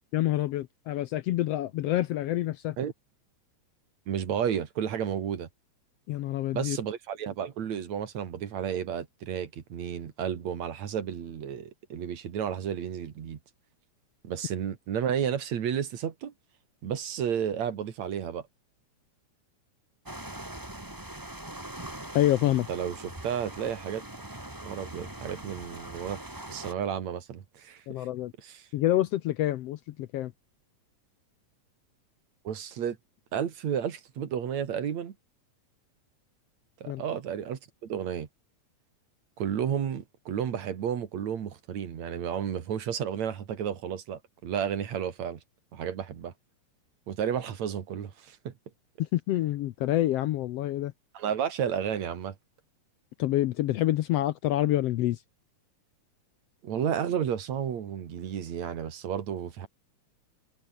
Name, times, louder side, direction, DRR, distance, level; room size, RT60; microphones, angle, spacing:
voice 1, 0.1-2.8 6.1-6.8 22.1-22.7 27.9-28.3 28.7-30.3 36.9-37.0 49.0-50.9 53.2-55.2, left 14 dB, 75° left, 1.6 m, -27 dB
voice 2, 4.1-5.5 6.5-13.4 14.2-16.3 16.8-18.5 22.5-24.0 24.6-26.2 26.5-28.1 28.4-28.7 32.4-33.0 33.3-35.1 36.8-38.3 39.4-45.4 45.7-46.3 47.1-48.5 51.1-52.4 56.6-59.7, right 8 dB, 70° right, 3.2 m, -32 dB
sound 1, 20.1-26.7, right 1 dB, 10° right, 1.9 m, -42 dB
omnidirectional pair, 3.4 m